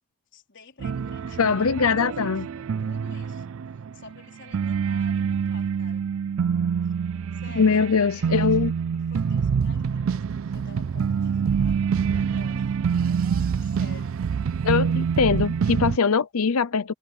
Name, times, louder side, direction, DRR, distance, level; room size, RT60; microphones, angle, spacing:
voice 1, 0.3-3.5 3.7-6.1 7.3-8.7 8.9-12.8 13.6-14.2, left 3 dB, 55° left, 4.3 m, -49 dB
sound 1, 0.8-4.2 4.4-16.0, right 6 dB, 65° right, 0.4 m, -26 dB
voice 2, 1.4-2.5 7.6-8.7 14.6-16.9, left 5 dB, 80° left, 0.7 m, -22 dB
sound 2, 10.5-11.2 12.8-15.4, right 7 dB, 80° right, 3.7 m, -51 dB
head